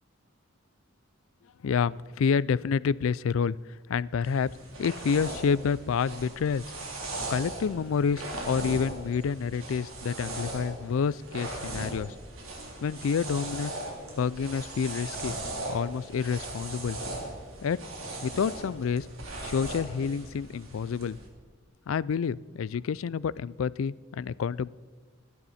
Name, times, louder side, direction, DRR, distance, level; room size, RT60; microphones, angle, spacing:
voice 1, 1.6-3.6 3.9-4.5 4.8-6.6 7.3-12.1 12.8-13.7 14.2-15.4 15.7-17.0 17.6-17.8 18.2-19.1 19.4-21.2 21.9-24.7, left 6 dB, 70° left, 21 dB, 0.4 m, -28 dB
sound 1, 4.2-21.3, right 2 dB, 75° right, 3.3 m, -39 dB
27.0 x 11.0 x 4.2 m, 1.4 s
head